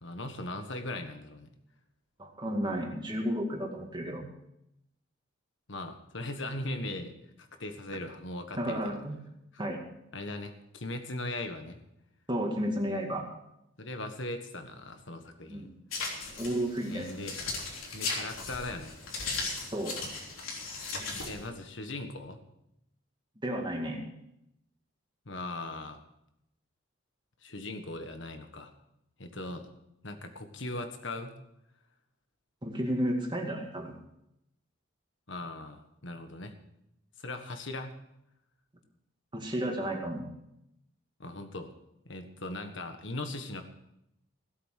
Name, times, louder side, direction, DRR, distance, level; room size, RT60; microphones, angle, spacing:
voice 1, 0.0-1.5 5.7-9.0 9.5-9.6 10.1-11.8 13.8-15.7 16.9-17.4 17.9-19.0 21.3-22.4 25.2-26.0 27.4-28.7 29.2-29.7 30.0-31.3 35.3-36.5 37.2-38.0 41.2-41.7 42.0-43.6, left 2 dB, 60° left, 7 dB, 1.5 m, -39 dB
voice 2, 2.2-4.2 8.6-9.1 9.6-9.8 12.3-13.2 15.5-15.7 16.4-17.1 19.7-20.0 23.4-24.0 32.6-33.9 39.3-40.3, equal, 20° right, 1 dB, 2.1 m, -32 dB
sound 1, 15.9-21.5, left 3 dB, 85° left, 3.5 m, -37 dB
17.0 x 8.1 x 6.6 m, 0.82 s
head